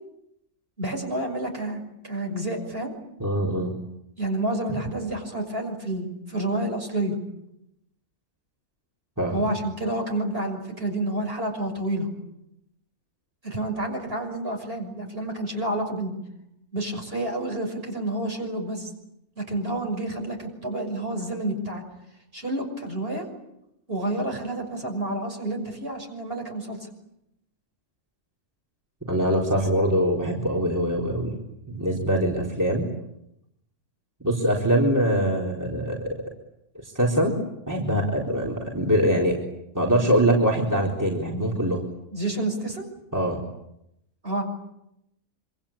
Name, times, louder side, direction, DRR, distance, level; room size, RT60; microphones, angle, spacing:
voice 1, 0.8-2.9 4.2-7.2 9.3-12.1 13.4-16.1 16.7-18.9 19.4-21.8 22.3-23.3 23.9-26.9 42.1-42.9 44.2-44.4, right 1 dB, 40° right, 3 dB, 6.4 m, -29 dB
voice 2, 3.2-3.7 4.7-4.8 9.2-9.4 29.1-31.3 31.7-32.9 34.2-36.2 36.8-37.4 37.7-39.4 39.7-41.8 43.1-43.4, equal, 10° right, -1 dB, 4.0 m, -23 dB
26.5 x 25.5 x 8.7 m, 0.81 s
omnidirectional pair, 1.6 m